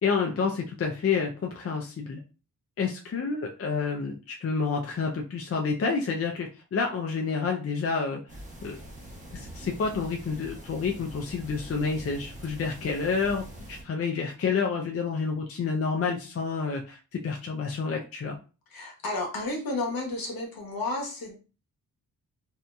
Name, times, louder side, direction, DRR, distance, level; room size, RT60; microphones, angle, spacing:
voice 1, 0.0-2.2 2.8-8.2 8.6-8.8 9.3-18.4, left 5 dB, 40° left, 1 dB, 0.5 m, -29 dB
sound 1, 8.3-13.8, right 1 dB, 20° right, 1.1 m, -44 dB
voice 2, 18.7-21.3, left 2 dB, 65° left, 0 dB, 1.2 m, -32 dB
2.7 x 2.6 x 2.3 m, 0.34 s
cardioid pair, 75°, 37 cm